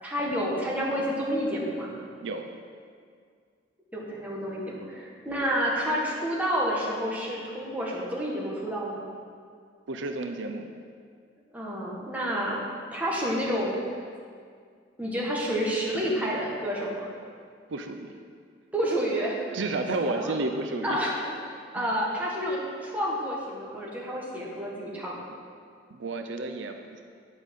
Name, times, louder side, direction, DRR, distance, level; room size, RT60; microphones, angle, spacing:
voice 1, 0.0-1.9 3.9-9.0 11.5-12.6 12.9-13.8 15.0-17.1 18.7-19.4 20.0-20.4 20.8-21.2 21.7-25.3, equal, 10° right, -5 dB, 1.6 m, -29 dB
voice 2, 9.9-10.7 17.7-18.2 19.5-21.0 21.8-21.9 25.9-27.0, right 2 dB, 75° right, 5 dB, 0.6 m, -31 dB
9.5 x 5.3 x 6.5 m, 2.1 s
head